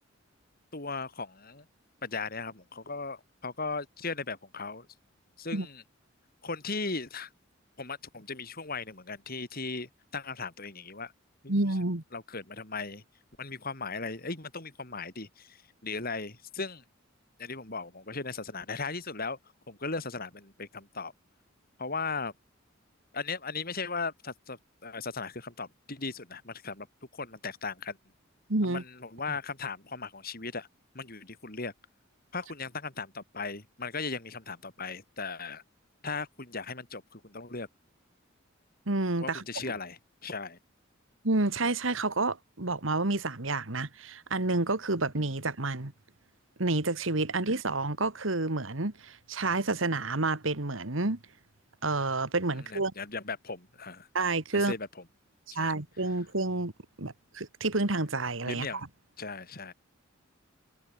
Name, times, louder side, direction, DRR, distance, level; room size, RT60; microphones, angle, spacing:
voice 1, 0.7-1.6 2.0-4.9 5.4-5.8 6.4-7.3 7.8-11.1 11.4-11.5 12.1-13.0 13.4-16.8 17.4-19.4 19.7-21.1 21.8-22.3 23.1-26.9 27.1-28.0 28.6-30.7 30.9-31.7 32.3-35.6 36.0-37.7 39.2-40.6 52.6-54.1 54.5-55.0 55.5-55.7 58.5-58.8 59.2-59.7, left 4 dB, 45° left, 4.5 m, -37 dB
voice 2, 11.5-12.0 28.5-28.8 38.9-39.4 41.2-45.9 46.6-51.2 51.8-52.9 54.1-54.7 55.6-56.7 57.0-58.7, right 2 dB, 70° right, 2.0 m, -29 dB
head